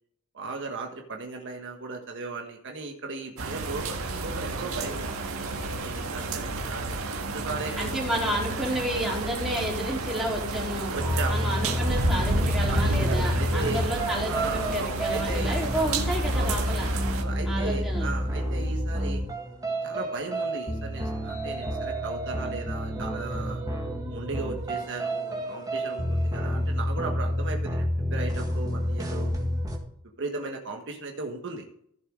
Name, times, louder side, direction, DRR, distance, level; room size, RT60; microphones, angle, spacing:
voice 1, 0.3-5.2 5.8-7.0 7.3-7.9 10.9-11.5 12.7-13.9 14.3-15.6 16.3-16.7 17.2-19.2 19.8-23.6 24.1-29.3 30.2-31.6, right 3 dB, 60° right, 2 dB, 1.4 m, -36 dB
sound 1, 3.4-17.2, right 2 dB, 80° right, 1.7 m, -31 dB
voice 2, 7.8-10.9 11.3-16.9 17.5-18.1, equal, ahead, -4 dB, 3.8 m, -31 dB
sound 2, 11.0-29.8, equal, 15° right, 1.8 m, -29 dB
15.0 x 7.2 x 3.8 m, 0.71 s
head